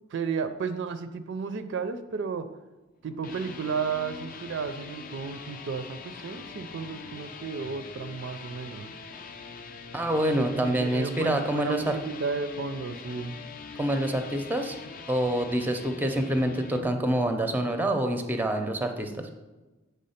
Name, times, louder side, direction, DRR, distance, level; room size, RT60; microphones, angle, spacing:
voice 1, 0.1-2.4 3.0-8.9 10.4-13.4, right 5 dB, 60° right, 10 dB, 0.4 m, -33 dB
sound 1, 3.0-16.9, left 4 dB, 45° left, 0.5 m, -43 dB
voice 2, 9.9-12.0 13.8-14.8 15.1-19.3, right 1 dB, 10° right, 6 dB, 0.5 m, -27 dB
7.5 x 3.4 x 5.7 m, 1.1 s
head